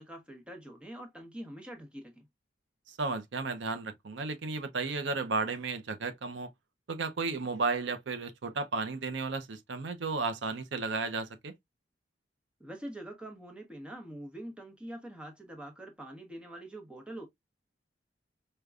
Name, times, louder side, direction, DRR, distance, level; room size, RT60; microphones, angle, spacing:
voice 1, 0.0-2.3 12.6-17.3, right 1 dB, 5° right, 0.9 m, -44 dB
voice 2, 2.9-6.5 6.9-11.5, right 4 dB, 80° right, 0.6 m, -33 dB
5.0 x 2.2 x 2.3 m
head